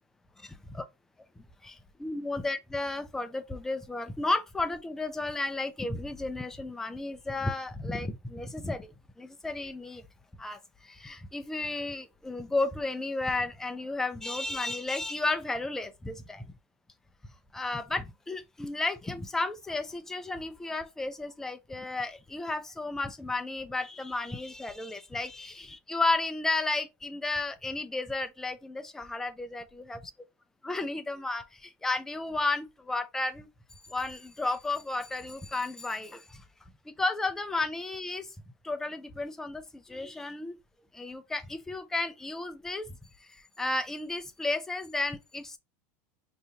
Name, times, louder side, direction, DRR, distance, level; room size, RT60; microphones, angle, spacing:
voice 1, 0.4-0.8 1.4-10.0 10.4-16.4 17.5-30.1 30.6-33.5 33.9-36.4 36.9-38.3 38.6-40.6 40.9-45.6, left 2 dB, 5° left, 0.4 m, -33 dB
4.8 x 2.8 x 2.6 m
supercardioid pair, 165°, 8 cm